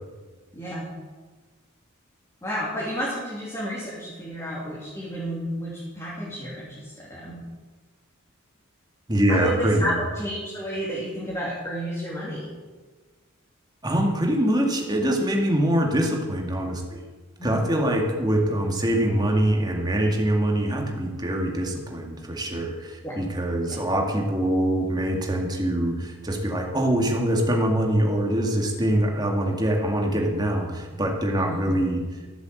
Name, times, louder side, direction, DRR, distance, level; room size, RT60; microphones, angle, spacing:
voice 1, 0.5-0.9 2.4-7.4 9.3-12.5 17.4-17.6 23.0-23.2 23.7-23.8 31.4-31.6, equal, 15° left, -7 dB, 3.1 m, -31 dB
voice 2, 9.1-10.0 13.8-17.0 17.4-32.0, right 1 dB, 20° right, 1 dB, 2.0 m, -24 dB
14.5 x 8.1 x 7.8 m, 1.4 s
head